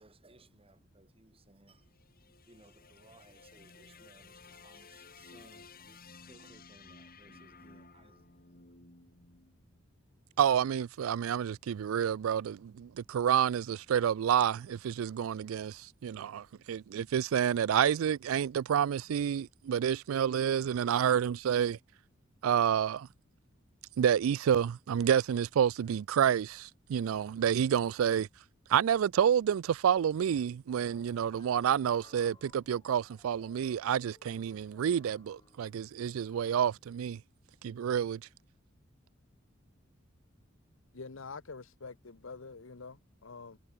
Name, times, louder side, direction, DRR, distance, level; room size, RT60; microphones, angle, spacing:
voice 1, 0.0-1.8 2.5-6.0 6.3-8.2, right 2 dB, 30° right, 2.0 m, -61 dB
sound 1, 1.8-10.1, left 4 dB, 45° left, 5.7 m, -56 dB
voice 2, 10.4-21.8 22.4-23.1 24.0-28.3 28.7-37.2 37.6-38.2, right 8 dB, 85° right, 0.3 m, -29 dB
sound 2, 30.7-36.0, left 2 dB, 20° left, 4.4 m, -62 dB
voice 3, 40.9-43.6, left 4 dB, 70° left, 1.0 m, -46 dB
head